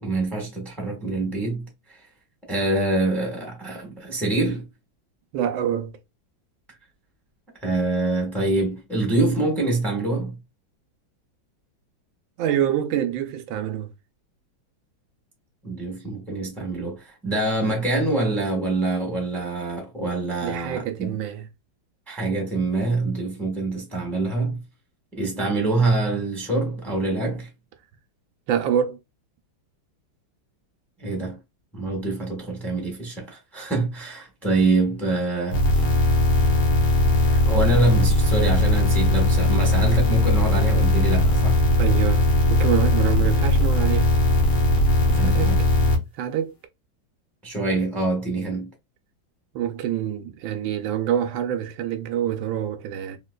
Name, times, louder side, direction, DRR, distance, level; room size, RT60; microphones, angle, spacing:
voice 1, 0.0-1.6 1.9-2.0 2.5-4.7 7.6-10.4 15.6-21.2 22.1-24.6 25.1-27.5 31.0-31.4 31.7-35.6 37.3-41.6 45.1-45.6 47.4-48.7, right 2 dB, ahead, 1.0 m, -25 dB
voice 2, 5.3-5.9 12.4-13.9 20.4-21.5 28.5-29.0 41.8-44.1 45.1-45.5 46.2-46.5 49.5-53.2, right 10 dB, 80° right, 1.3 m, -26 dB
sound 1, 35.5-45.9, left 1 dB, 65° left, 1.7 m, -19 dB
3.8 x 2.8 x 2.2 m
omnidirectional pair, 2.1 m